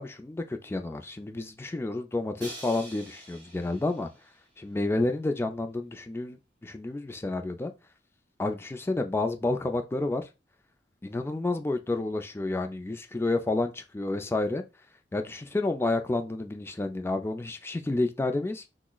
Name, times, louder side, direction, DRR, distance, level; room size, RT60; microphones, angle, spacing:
voice 1, 0.0-4.1 4.6-7.7 8.4-10.2 11.0-14.6 15.1-18.7, left 2 dB, 15° left, 0.3 m, -30 dB
Crash cymbal, 2.4-4.4, right 1 dB, 25° right, 1.5 m, -45 dB
6.0 x 2.0 x 2.3 m
head